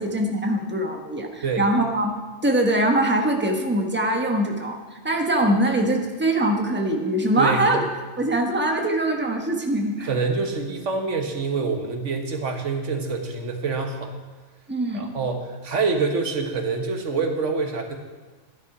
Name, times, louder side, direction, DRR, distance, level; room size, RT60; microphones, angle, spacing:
voice 1, 0.0-2.1 2.4-7.8 8.2-10.1 14.7-15.1, right 1 dB, 10° right, 2 dB, 1.2 m, -23 dB
voice 2, 7.4-7.8 10.0-14.1 14.9-17.9, right 4 dB, 90° right, 4 dB, 1.6 m, -26 dB
13.0 x 10.5 x 4.9 m, 1.3 s
omnidirectional pair, 1.2 m